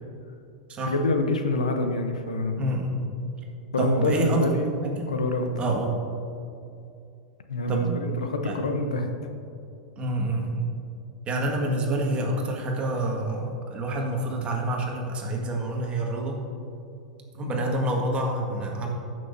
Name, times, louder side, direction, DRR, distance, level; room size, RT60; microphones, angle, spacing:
voice 1, 0.9-2.6 3.7-4.7 5.1-5.5 7.5-9.1 17.4-17.5, left 2 dB, 90° left, 5 dB, 0.8 m, -26 dB
voice 2, 2.6-3.1 3.8-4.4 4.8-5.1 5.6-6.0 7.7-8.0 8.4-8.6 10.0-10.7 11.3-16.4 17.3-18.9, right 1 dB, 30° right, 0 dB, 1.7 m, -27 dB
14.5 x 6.2 x 2.7 m, 2.6 s
hypercardioid pair, 100°, 4 cm